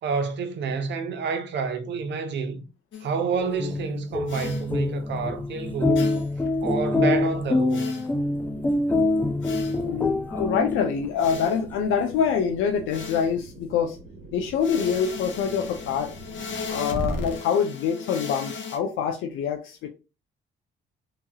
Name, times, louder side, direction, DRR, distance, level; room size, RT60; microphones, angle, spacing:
voice 1, 0.0-2.7 3.0-6.1 6.6-7.8, right 5 dB, 65° right, 0.7 m, -28 dB
sound 1, 2.9-3.2 4.3-4.7 6.0-6.4 7.7-8.1 9.4-9.8 11.2-11.6 12.9-13.4 14.6-18.8, left 3 dB, 75° left, 0.9 m, -35 dB
sound 2, 3.4-11.1, left 2 dB, 10° left, 0.3 m, -25 dB
sound 3, 8.2-17.3, right 2 dB, 80° right, 1.0 m, -45 dB
voice 2, 9.8-14.0 14.3-16.1 16.7-19.9, left 7 dB, 90° left, 0.5 m, -25 dB
2.9 x 2.2 x 2.7 m
cardioid pair, 90°, 20 cm